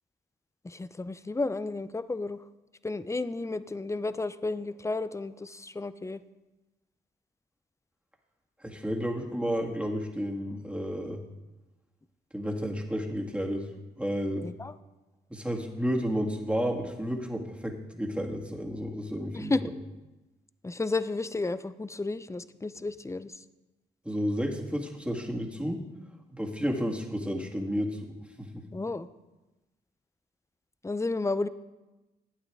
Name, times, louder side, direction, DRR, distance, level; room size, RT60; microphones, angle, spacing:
voice 1, 0.6-2.4 2.8-6.2 14.4-14.8 19.3-19.7 20.6-23.3 28.7-29.1 30.8-31.5, left 3 dB, 15° left, 14 dB, 0.5 m, -32 dB
voice 2, 8.6-11.2 12.3-13.7 14.0-14.5 15.3-19.6 24.1-25.8 26.3-28.0 28.4-28.6, equal, 5° right, 0 dB, 2.0 m, -31 dB
11.5 x 8.9 x 3.6 m, 1.1 s
supercardioid pair, 50°, 21 cm